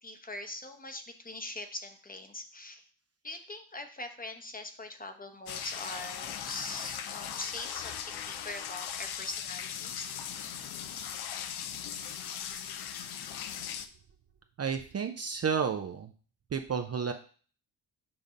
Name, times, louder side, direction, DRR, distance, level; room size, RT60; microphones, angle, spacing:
voice 1, 0.0-2.8 3.2-10.1, left 2 dB, 20° left, 7 dB, 0.9 m, -42 dB
sound 1, 5.5-13.9, left 9 dB, 60° left, 0.7 m, -39 dB
voice 2, 14.6-16.1 16.5-17.1, right 6 dB, 35° right, 6 dB, 0.6 m, -31 dB
7.2 x 2.7 x 5.1 m, 0.41 s
supercardioid pair, 70°, 44 cm